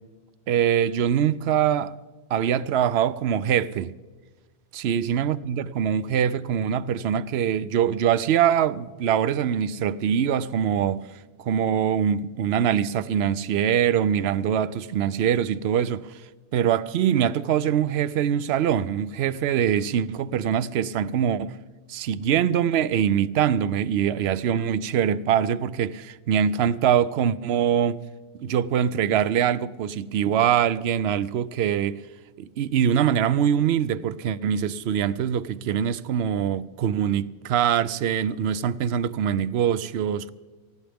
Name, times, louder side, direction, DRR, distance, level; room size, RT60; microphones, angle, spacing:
voice 1, 0.5-1.9 2.3-3.9 4.7-11.0 11.4-16.0 16.5-21.5 21.9-28.0 28.4-32.0 32.4-40.3, right 9 dB, 70° right, 0.8 m, -23 dB
19.0 x 15.0 x 3.5 m
omnidirectional pair, 1.1 m